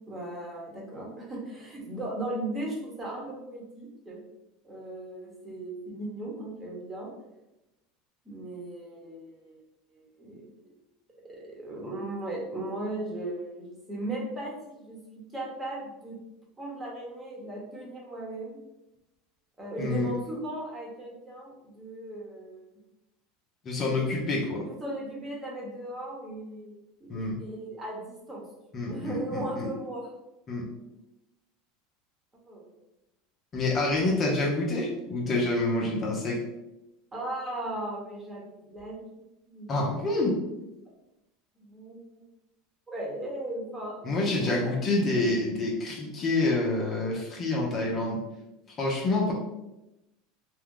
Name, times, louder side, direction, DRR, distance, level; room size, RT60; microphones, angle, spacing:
voice 1, 0.1-4.2 4.6-7.1 8.2-9.6 9.9-10.5 11.2-16.2 16.6-18.6 19.6-22.6 23.8-24.0 24.6-28.5 28.8-30.1 32.5-32.7 37.1-39.1 39.4-39.9 41.5-42.0 42.9-44.1 44.4-44.7, right 1 dB, 15° right, -3 dB, 1.0 m, -37 dB
voice 2, 19.8-20.1 23.6-24.7 27.1-27.4 28.7-29.7 30.5-30.7 33.5-36.4 39.7-40.4 44.0-48.2 48.8-49.3, left 2 dB, 35° left, -2 dB, 0.7 m, -27 dB
2.7 x 2.3 x 3.7 m, 0.95 s
supercardioid pair, 115°, 0 cm